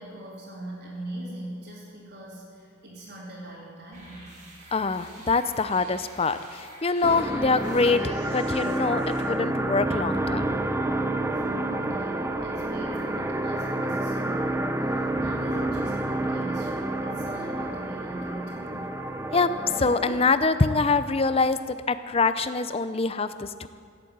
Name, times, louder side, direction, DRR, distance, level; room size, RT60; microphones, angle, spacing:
voice 1, 0.0-4.4 11.4-19.0, right 1 dB, 50° right, -8 dB, 3.2 m, -41 dB
sound 1, 3.9-9.3, right 1 dB, 35° right, 2.9 m, -48 dB
voice 2, 4.7-10.5 19.3-19.5 19.8-23.7, left 4 dB, 30° left, 12 dB, 0.5 m, -25 dB
sound 2, 7.0-20.4, right 1 dB, 15° right, 0.6 m, -29 dB
16.5 x 8.6 x 7.9 m, 2.2 s
head